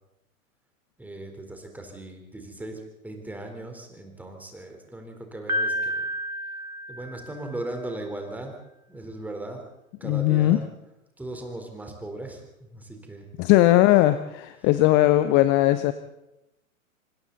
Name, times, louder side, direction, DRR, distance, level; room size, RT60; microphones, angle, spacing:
voice 1, 1.0-6.1 6.4-6.5 6.9-8.6 8.9-9.6 10.0-10.7 11.2-13.3, right 2 dB, 5° right, 3 dB, 3.9 m, -38 dB
Piano, 5.5-7.6, equal, 85° right, 2.2 m, -30 dB
voice 2, 10.0-10.6 13.4-15.9, left 15 dB, 25° left, 12 dB, 0.8 m, -19 dB
26.0 x 25.5 x 4.1 m, 0.89 s
figure-of-eight pair, 110°, 41 cm